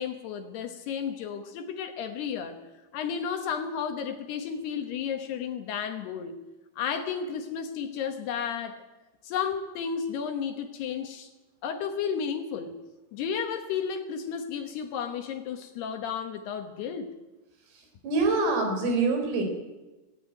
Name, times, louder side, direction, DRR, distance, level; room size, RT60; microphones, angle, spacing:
voice 1, 0.0-2.6 2.9-6.4 6.8-8.8 9.2-11.3 11.6-12.7 13.1-17.1, left 7 dB, 70° left, 6 dB, 2.8 m, -32 dB
voice 2, 18.0-19.4, right 3 dB, 90° right, 4 dB, 6.7 m, -25 dB
17.0 x 17.0 x 9.2 m, 1.1 s
omnidirectional pair, 5.7 m